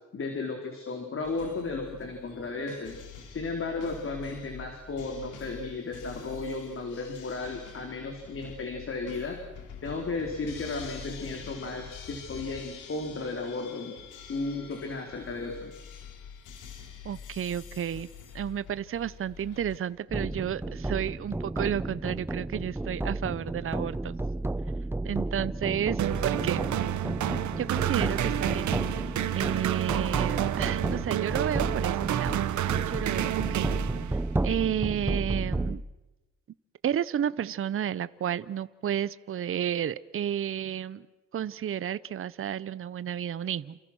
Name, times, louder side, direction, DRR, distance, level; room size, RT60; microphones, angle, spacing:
voice 1, 0.1-3.0 3.3-9.4 9.8-14.0 14.3-15.7, left 3 dB, 45° left, 3 dB, 4.4 m, -34 dB
sound 1, 1.2-19.8, left 7 dB, 85° left, 4.0 m, -46 dB
voice 2, 17.0-18.1 18.3-24.2 25.0-26.6 27.6-33.8 34.1-34.2 34.4-35.8 36.8-41.1 41.3-43.8, right 9 dB, 45° right, 17 dB, 0.8 m, -32 dB
sound 2, 20.1-35.8, right 2 dB, 10° right, 0.8 m, -32 dB
sound 3, 26.0-34.4, right 12 dB, 70° right, 1.2 m, -29 dB
29.0 x 28.5 x 6.3 m, 1.1 s
cardioid pair, 90°, 30 cm